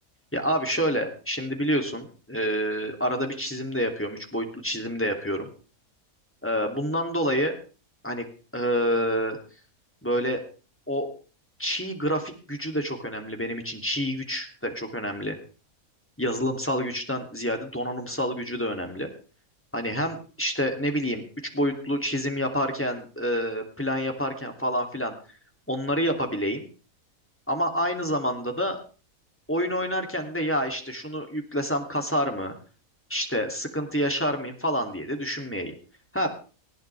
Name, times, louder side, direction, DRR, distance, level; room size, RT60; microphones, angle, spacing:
voice 1, 0.3-5.5 6.4-7.5 8.0-8.3 8.5-9.4 10.0-10.4 10.9-11.1 11.6-15.4 16.2-19.1 19.7-21.2 21.5-25.1 25.7-26.7 27.5-28.8 29.5-32.5 33.1-35.7 36.1-36.3, equal, 10° left, 3 dB, 2.9 m, -28 dB
19.5 x 17.0 x 3.5 m, 0.37 s
omnidirectional pair, 1.5 m